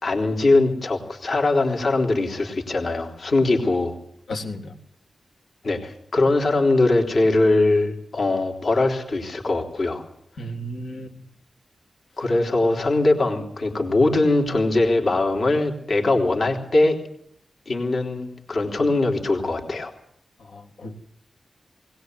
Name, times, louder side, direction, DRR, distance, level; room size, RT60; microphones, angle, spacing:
voice 1, 0.0-3.9 5.6-10.0 12.2-17.0 17.7-19.9, left 2 dB, 50° left, 2 dB, 3.6 m, -21 dB
voice 2, 4.3-4.7 10.4-11.1 20.5-21.0, equal, 75° left, 5 dB, 3.4 m, -33 dB
21.5 x 19.5 x 8.1 m, 0.65 s
wide cardioid pair, 165°, 0 cm